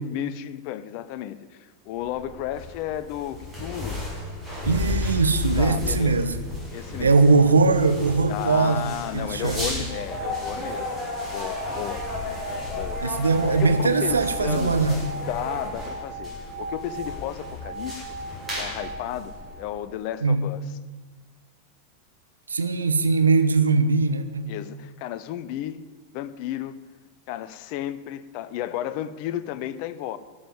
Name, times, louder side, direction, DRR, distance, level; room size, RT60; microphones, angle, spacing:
voice 1, 0.0-4.0 5.6-6.2 6.7-7.2 8.3-12.1 12.7-13.5 14.0-20.6 24.5-25.9 26.1-26.8 27.3-30.2, left 12 dB, 45° left, 14 dB, 0.7 m, -33 dB
sound 1, 2.0-19.9, left 3 dB, 10° right, 5.8 m, -35 dB
voice 2, 4.6-6.4 7.0-9.8 13.0-15.0 20.2-20.4 22.5-24.5, right 4 dB, 75° right, 9 dB, 1.1 m, -21 dB
sound 2, 8.6-15.7, left 3 dB, 10° left, 4.4 m, -36 dB
sound 3, 9.8-19.9, right 2 dB, 55° right, 3.2 m, -37 dB
12.5 x 7.3 x 10.0 m, 1.4 s
figure-of-eight pair, 90°, 0 cm